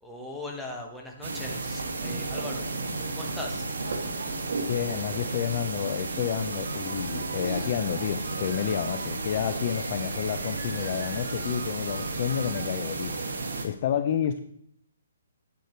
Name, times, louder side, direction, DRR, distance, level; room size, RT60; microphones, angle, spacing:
voice 1, 0.0-2.7 3.1-3.7, left 2 dB, ahead, -1 dB, 1.0 m, -39 dB
sound 1, 1.2-13.7, right 3 dB, 70° right, 2.1 m, -33 dB
voice 2, 4.7-13.1 13.6-14.4, left 9 dB, 30° left, 9 dB, 0.4 m, -30 dB
sound 2, 6.5-12.6, right 3 dB, 45° right, 4.8 m, -46 dB
sound 3, 7.3-12.6, equal, 25° right, 4.1 m, -46 dB
9.3 x 8.3 x 4.4 m, 0.69 s
hypercardioid pair, 175°, 0 cm